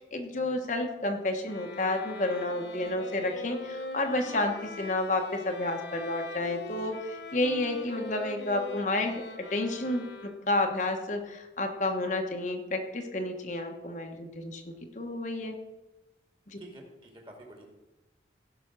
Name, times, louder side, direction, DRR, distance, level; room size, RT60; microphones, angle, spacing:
voice 1, 0.0-9.2 9.5-15.5 16.5-16.6, left 2 dB, 45° left, 3 dB, 1.2 m, -31 dB
sound 1, 1.5-10.7, left 3 dB, 90° left, 1.1 m, -42 dB
voice 2, 16.6-17.6, right 1 dB, 30° right, 1 dB, 2.4 m, -49 dB
16.5 x 6.0 x 6.1 m, 1.0 s
head